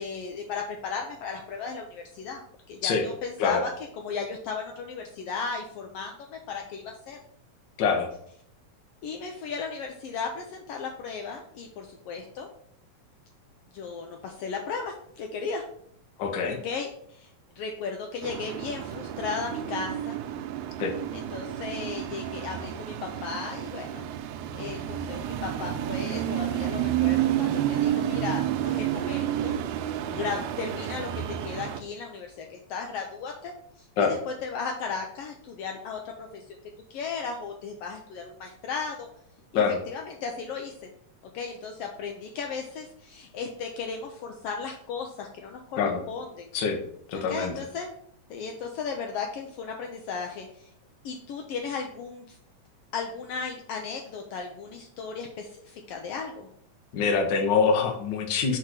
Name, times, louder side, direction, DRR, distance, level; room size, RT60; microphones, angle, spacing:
voice 1, 0.0-2.4 2.7-7.2 9.0-12.5 13.7-15.6 16.5-17.3 17.6-20.2 21.1-24.1 24.6-29.6 30.1-36.6 36.9-39.1 39.5-40.9 41.3-45.8 46.1-46.5 47.1-47.9 48.3-50.7 51.0-52.4 52.9-56.5, left 5 dB, 85° left, 3 dB, 1.3 m, -35 dB
voice 2, 16.2-16.6 20.8-20.9 34.0-34.2 39.5-39.8 45.8-46.0 46.5-46.8 47.1-47.5 56.9-58.6, left 5 dB, 65° left, 3 dB, 1.1 m, -24 dB
sound 1, 18.2-31.8, right 11 dB, 90° right, 2.0 m, -30 dB
4.7 x 4.6 x 6.0 m, 0.68 s
omnidirectional pair, 3.4 m